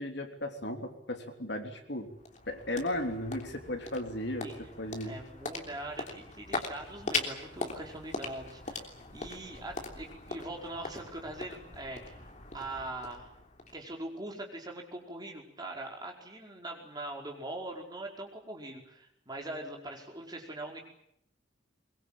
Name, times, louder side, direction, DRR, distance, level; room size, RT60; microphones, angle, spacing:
voice 1, 0.0-2.1 2.5-4.5 4.8-5.1, left 1 dB, 60° left, 4 dB, 3.4 m, -35 dB
sound 1, 1.8-14.2, left 3 dB, 40° left, 3.3 m, -41 dB
voice 2, 5.0-12.3 12.5-13.3 13.7-20.8, right 1 dB, 20° right, 1 dB, 4.9 m, -42 dB
23.0 x 22.5 x 8.9 m, 0.74 s
head